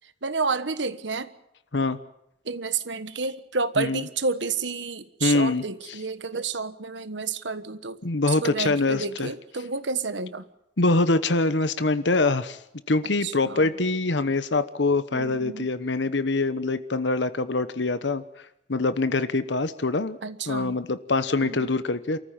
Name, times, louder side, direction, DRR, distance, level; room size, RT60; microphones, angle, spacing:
voice 1, 0.2-1.3 2.4-8.0 8.3-10.5 13.2-13.7 15.1-15.7 20.2-20.8 21.4-21.7, right 4 dB, 80° right, 12 dB, 1.4 m, -30 dB
voice 2, 5.2-5.6 8.0-9.3 10.8-12.6 12.9-18.2 18.7-20.2 20.5-22.2, left 3 dB, 75° left, 13 dB, 1.1 m, -24 dB
27.5 x 14.5 x 8.9 m, 0.81 s
head